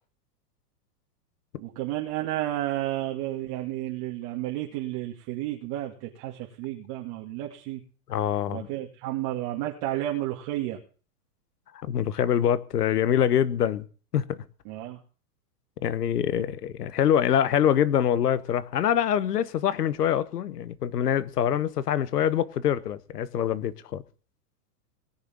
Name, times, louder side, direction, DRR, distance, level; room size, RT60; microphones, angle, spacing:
voice 1, 1.6-7.8 8.5-10.8 14.7-15.0, right 14 dB, 45° right, 2.3 m, -32 dB
voice 2, 8.1-8.7 11.8-13.8 14.1-14.4 15.8-24.0, left 9 dB, 85° left, 1.2 m, -25 dB
19.0 x 6.7 x 7.3 m
hypercardioid pair, 120°, 46 cm